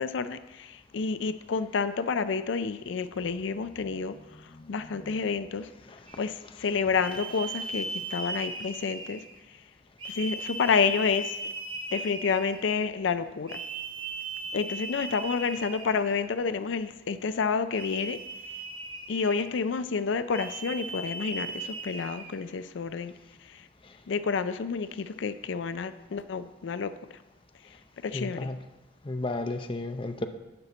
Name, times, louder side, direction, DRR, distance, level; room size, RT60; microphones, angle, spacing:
voice 1, 0.0-5.7 6.2-9.7 10.0-11.4 11.9-13.6 14.5-18.6 19.1-23.1 23.4-23.7 24.1-27.2 27.6-27.8 28.0-28.5, left 5 dB, 80° left, 12 dB, 0.4 m, -30 dB
voice 2, 4.5-5.1 5.9-6.0 7.3-7.4 28.1-28.6 29.0-30.3, left 2 dB, 30° left, 7 dB, 0.6 m, -34 dB
sound 1, 6.1-6.3 7.0-9.4 10.0-12.7 13.5-16.3 17.7-19.6 20.3-22.4, right 2 dB, 25° right, 1.2 m, -38 dB
12.0 x 4.3 x 8.0 m, 1.1 s
head